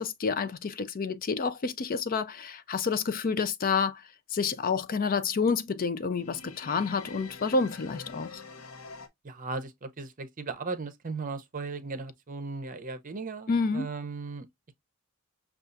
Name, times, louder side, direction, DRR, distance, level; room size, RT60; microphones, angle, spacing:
voice 1, 0.0-4.0 4.3-8.4 13.5-13.9, left 5 dB, 40° left, 0.4 m, -29 dB
sound 1, 6.1-9.1, left 4 dB, 70° left, 0.9 m, -46 dB
voice 2, 9.2-14.5, right 4 dB, 35° right, 0.7 m, -37 dB
6.6 x 2.4 x 2.5 m
head